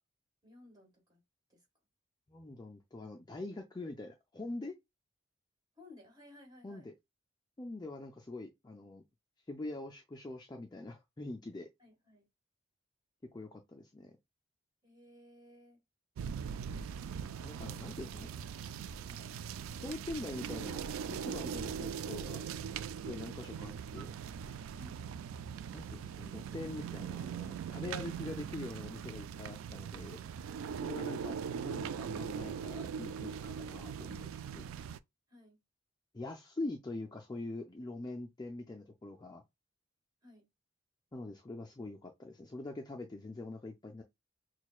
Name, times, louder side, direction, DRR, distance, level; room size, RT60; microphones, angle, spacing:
voice 1, 0.4-1.2 1.5-1.7 5.8-6.9 11.8-12.3 14.8-15.8 17.8-17.9 18.2-19.4 24.7-25.0 35.3-35.6 40.2-40.5, left 1 dB, 20° right, 1.6 m, -58 dB
voice 2, 2.3-4.8 6.6-6.9 7.6-9.0 9.5-11.7 13.3-14.1 17.4-18.3 19.8-20.8 21.1-22.4 23.0-24.1 25.7-30.2 30.8-34.6 36.1-39.4 41.1-44.0, left 2 dB, 20° left, 0.4 m, -44 dB
sound 1, 16.2-35.0, right 7 dB, 85° right, 0.3 m, -41 dB
6.1 x 2.2 x 2.3 m
head